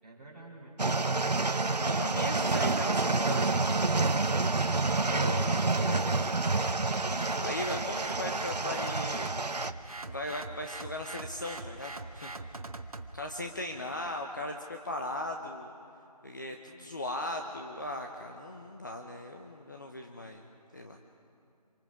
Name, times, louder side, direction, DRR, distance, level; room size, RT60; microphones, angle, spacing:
voice 1, 0.0-0.8 13.4-13.9, right 2 dB, 15° right, -8 dB, 4.5 m, -52 dB
sound 1, 0.8-9.7, right 3 dB, 85° right, 0.8 m, -28 dB
voice 2, 1.8-3.6 4.8-6.3 7.4-9.3 10.1-12.3 13.1-15.7 16.2-20.4 20.7-21.0, left 1 dB, 30° left, 2 dB, 0.8 m, -38 dB
sound 2, 6.9-13.1, right 2 dB, 60° right, 1.1 m, -42 dB
26.0 x 24.5 x 5.0 m, 2.6 s
figure-of-eight pair, 165°, 21 cm